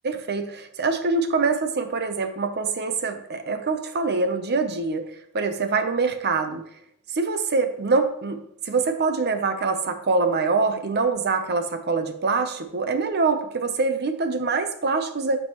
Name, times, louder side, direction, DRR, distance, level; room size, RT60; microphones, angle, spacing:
voice 1, 0.0-5.1 5.3-6.6 7.1-8.4 8.7-15.4, right 4 dB, 50° right, 8 dB, 0.8 m, -24 dB
13.5 x 5.4 x 3.1 m, 0.76 s
head